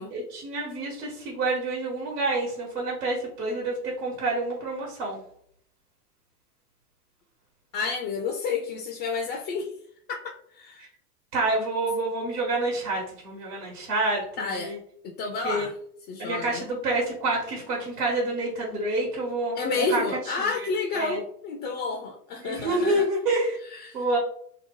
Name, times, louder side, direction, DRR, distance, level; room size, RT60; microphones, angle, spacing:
voice 1, 0.1-5.2 11.3-14.8 15.4-15.7 16.2-20.0 20.4-20.5 20.9-21.2 22.4-23.6 23.9-24.2, right 2 dB, 80° right, -3 dB, 1.2 m, -28 dB
voice 2, 7.7-9.7 10.1-10.9 14.4-14.7 15.0-15.7 16.1-16.6 19.5-23.1 23.7-24.0, left 4 dB, 35° left, 2 dB, 0.4 m, -30 dB
2.8 x 2.0 x 2.9 m, 0.63 s
hypercardioid pair, 90°, 46 cm